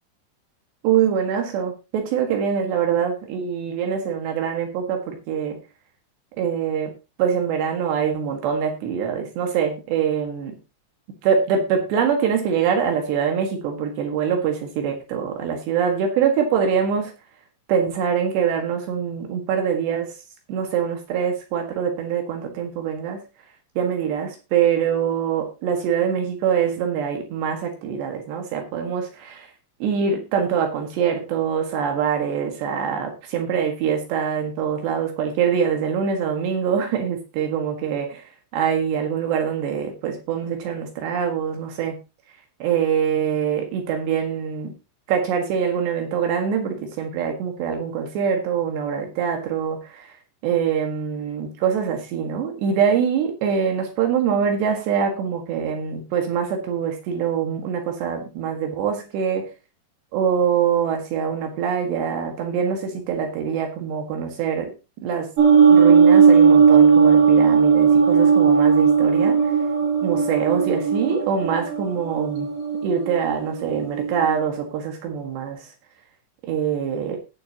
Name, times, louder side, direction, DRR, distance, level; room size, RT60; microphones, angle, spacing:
voice 1, 0.8-5.6 6.4-6.9 7.2-10.6 11.2-17.1 17.7-20.1 20.5-23.2 23.8-29.5 29.8-38.2 38.5-42.0 42.6-44.7 45.1-50.2 50.4-59.5 60.1-64.7 65.0-65.3 65.7-69.5 70.0-72.5 72.8-75.7 76.5-77.2, right 7 dB, 80° right, 3 dB, 3.8 m, -24 dB
sound 1, 65.4-74.4, right 6 dB, 55° right, 3.4 m, -16 dB
18.0 x 7.7 x 2.9 m, 0.28 s
omnidirectional pair, 4.9 m